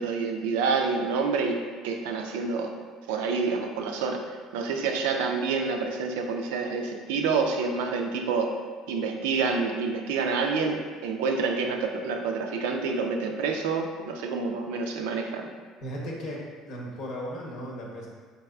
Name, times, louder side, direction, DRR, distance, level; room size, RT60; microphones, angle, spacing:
voice 1, 0.0-2.8 3.1-4.2 4.5-8.6 8.9-15.5, right 4 dB, 80° right, 3 dB, 0.3 m, -28 dB
voice 2, 15.8-18.1, equal, 65° left, -2 dB, 0.8 m, -36 dB
4.0 x 3.3 x 2.3 m, 1.5 s
hypercardioid pair, 70°, 0 cm